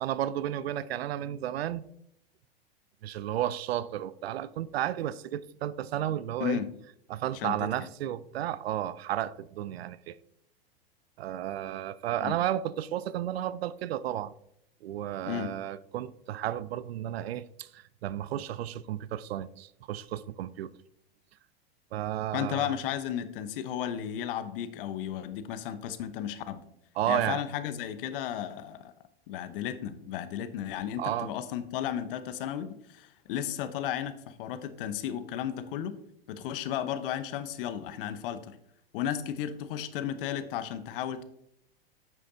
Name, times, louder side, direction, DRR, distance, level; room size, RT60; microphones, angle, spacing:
voice 1, 0.0-1.8 3.0-6.6 7.1-10.2 11.2-14.3 14.8-20.7 21.9-22.8 27.0-27.4 31.0-31.3, right 12 dB, 80° right, 0.5 m, -33 dB
voice 2, 7.3-7.9 12.2-12.4 15.3-15.5 22.3-26.6 27.0-28.9 29.3-36.0 36.3-38.6 38.9-41.2, left 10 dB, 60° left, 0.9 m, -34 dB
8.6 x 6.4 x 2.7 m
hypercardioid pair, 105°, 30 cm